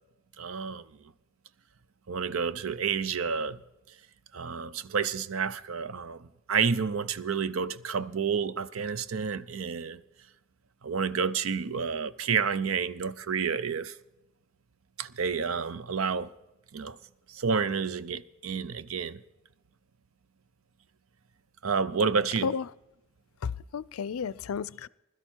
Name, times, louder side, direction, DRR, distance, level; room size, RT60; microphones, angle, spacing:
voice 1, 0.4-0.9 2.1-3.6 4.3-10.0 10.8-14.0 15.0-16.3 16.7-17.0 17.3-19.2 21.6-22.5, right 6 dB, 80° right, 0.6 m, -30 dB
voice 2, 23.4-24.9, left 6 dB, 85° left, 0.4 m, -32 dB
21.0 x 12.5 x 4.5 m
head